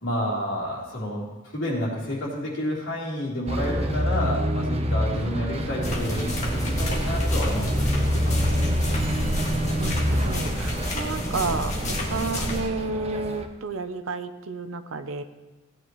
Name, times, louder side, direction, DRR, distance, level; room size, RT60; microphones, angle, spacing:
voice 1, 0.0-7.7 8.1-8.7, equal, 65° left, -5 dB, 3.3 m, -30 dB
Bus, 3.5-13.5, equal, 30° right, 0.7 m, -27 dB
sound 1, 5.8-12.6, equal, 35° left, 1.8 m, -29 dB
voice 2, 9.8-11.7 12.1-15.2, right 3 dB, 70° right, 10 dB, 0.7 m, -31 dB
16.5 x 9.7 x 3.1 m, 1.1 s
head